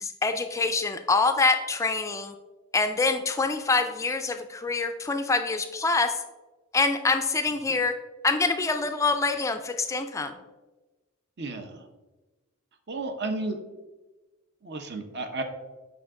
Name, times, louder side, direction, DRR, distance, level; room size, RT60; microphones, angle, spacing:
voice 1, 0.0-2.3 2.7-6.2 6.7-7.9 8.2-10.3, left 3 dB, 15° left, 8 dB, 0.3 m, -25 dB
voice 2, 11.4-11.8 12.9-13.6 14.6-15.4, right 2 dB, 55° right, 7 dB, 0.8 m, -32 dB
7.1 x 5.3 x 3.7 m, 1.2 s
head